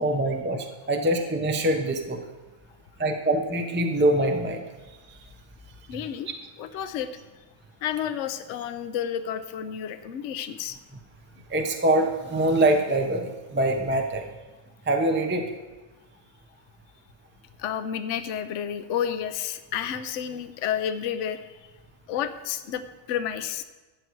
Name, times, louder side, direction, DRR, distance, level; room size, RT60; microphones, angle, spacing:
voice 1, 0.0-2.2 3.0-4.6 11.5-14.3 14.9-15.5, right 1 dB, 10° right, 3 dB, 0.6 m, -24 dB
voice 2, 5.9-6.3 6.6-7.1 7.8-10.8 17.6-21.4 22.1-22.8 23.1-23.6, left 9 dB, 65° left, 10 dB, 0.9 m, -30 dB
12.5 x 8.2 x 4.6 m, 1.2 s
omnidirectional pair, 1.4 m